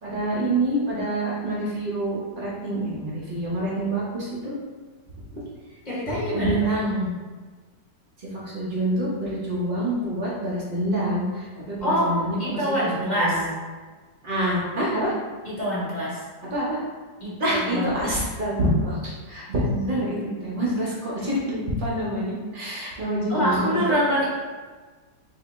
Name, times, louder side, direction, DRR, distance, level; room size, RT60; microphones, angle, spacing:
voice 1, 0.0-4.5 5.3-5.4 6.3-7.1 8.3-12.4 13.2-13.5 14.2-15.1 16.5-16.8 17.4-24.1, right 1 dB, 50° right, -6 dB, 0.6 m, -26 dB
voice 2, 5.8-6.7 11.8-13.5 15.4-16.2 17.2-18.2 23.3-24.3, equal, 35° left, -7 dB, 0.7 m, -25 dB
2.9 x 2.7 x 4.0 m, 1.4 s
omnidirectional pair, 1.9 m